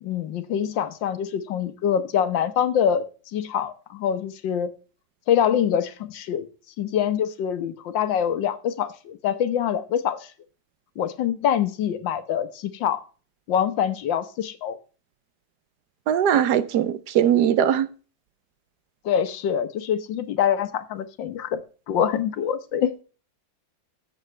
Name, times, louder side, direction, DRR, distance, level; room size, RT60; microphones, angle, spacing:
voice 1, 0.0-3.0 3.3-4.7 5.3-6.5 6.8-10.3 11.0-13.0 13.5-14.8 19.0-21.6 21.9-23.0, left 9 dB, 85° left, 1.7 m, -25 dB
voice 2, 16.1-17.9, right 9 dB, 70° right, 1.2 m, -20 dB
14.5 x 7.2 x 3.2 m
omnidirectional pair, 2.0 m